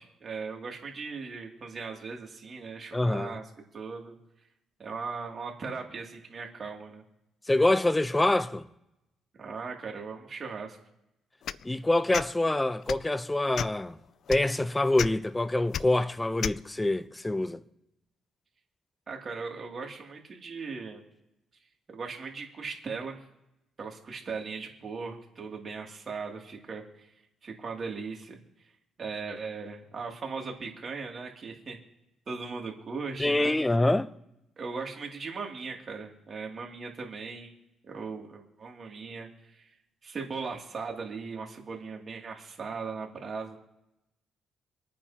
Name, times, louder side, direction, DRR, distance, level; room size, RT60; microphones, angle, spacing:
voice 1, 0.0-3.4 3.7-4.1 4.8-7.0 9.4-10.8 19.1-21.0 21.9-23.2 23.8-27.1 27.4-28.4 29.0-31.8 32.3-33.6 34.6-37.5 37.8-39.7 40.0-43.6, right 4 dB, 45° right, 2.8 m, -38 dB
voice 2, 2.9-3.3 7.5-8.6 11.6-14.0 14.3-17.6 33.2-34.1, left 2 dB, 15° left, 0.7 m, -25 dB
sound 1, 11.4-11.6 12.1-12.3 12.8-13.1 13.5-13.8 14.3-14.4 15.0-15.1 15.7-15.8 16.4-16.6, left 9 dB, 65° left, 0.3 m, -31 dB
27.0 x 9.4 x 3.0 m
cardioid pair, 90°, 0 cm